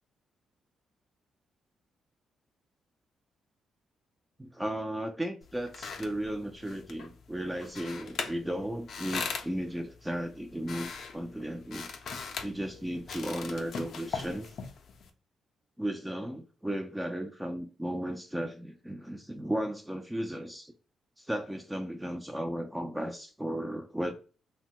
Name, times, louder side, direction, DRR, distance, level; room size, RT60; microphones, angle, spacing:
voice 1, 4.4-11.9 12.4-14.5 15.8-20.7 21.2-24.1, right 1 dB, 10° right, 0.4 m, -35 dB
sound 1, 5.4-15.1, left 5 dB, 65° left, 0.5 m, -41 dB
2.9 x 2.1 x 2.8 m
cardioid pair, 75°, 0 cm